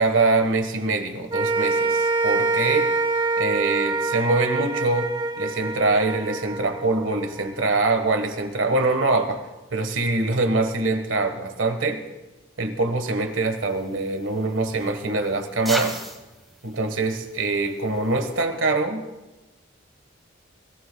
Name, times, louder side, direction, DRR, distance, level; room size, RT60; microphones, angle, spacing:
voice 1, 0.0-2.9 3.4-5.1 5.4-9.4 9.7-12.0 12.6-16.0 16.6-19.1, right 3 dB, 80° right, 7 dB, 1.4 m, -24 dB
sound 1, 1.3-7.7, right 3 dB, 25° right, 0.9 m, -25 dB
sound 2, 13.3-18.4, right 1 dB, ahead, 1.3 m, -38 dB
21.5 x 14.5 x 2.3 m, 1.1 s
head